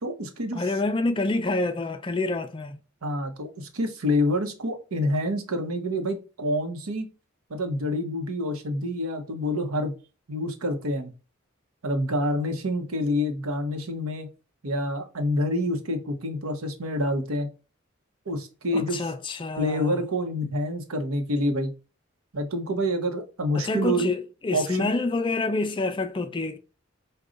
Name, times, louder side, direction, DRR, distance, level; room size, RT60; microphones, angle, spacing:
voice 1, 0.0-0.6 3.0-7.1 7.5-9.9 10.3-11.1 11.8-14.3 14.6-17.5 18.3-19.0 19.6-21.7 22.3-24.1 24.5-24.9, left 1 dB, 80° right, 0.8 m, -27 dB
voice 2, 0.5-2.8 18.7-20.0 23.5-26.6, left 3 dB, 25° left, 0.3 m, -27 dB
5.0 x 2.3 x 3.8 m
head